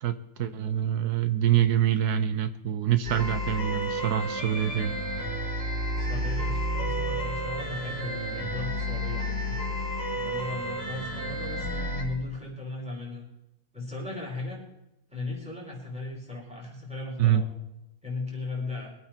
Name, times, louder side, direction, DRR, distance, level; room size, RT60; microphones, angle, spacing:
voice 1, 0.0-5.0 17.2-17.4, right 10 dB, 80° right, 11 dB, 1.3 m, -25 dB
sound 1, 3.0-12.0, equal, 40° right, 5.7 m, -31 dB
voice 2, 6.0-9.6 10.1-13.3 13.7-14.6 15.1-17.5 18.0-19.0, left 3 dB, 5° right, -1 dB, 4.6 m, -37 dB
23.5 x 8.9 x 4.5 m, 0.85 s
omnidirectional pair, 1.7 m